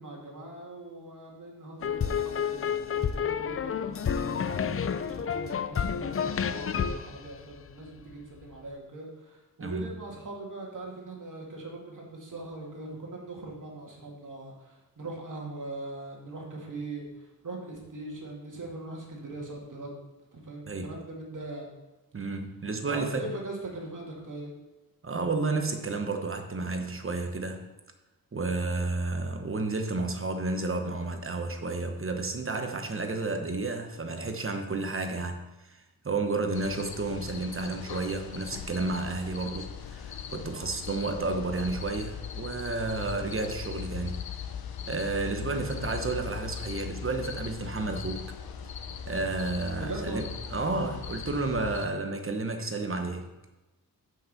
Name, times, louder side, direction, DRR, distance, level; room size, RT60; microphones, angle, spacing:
voice 1, 0.0-19.9 20.3-21.7 22.9-24.5 49.7-50.4, right 2 dB, 55° right, -2 dB, 2.3 m, -41 dB
sound 1, 1.8-8.1, left 7 dB, 40° left, 0.5 m, -30 dB
voice 2, 20.7-21.0 22.1-23.3 25.0-27.7 28.3-44.2 44.9-48.3 49.1-53.2, right 3 dB, 35° right, 5 dB, 1.0 m, -31 dB
sound 2, 36.5-51.9, left 7 dB, 75° left, 0.7 m, -39 dB
5.8 x 5.3 x 6.7 m, 1.1 s
cardioid pair, 75°, 37 cm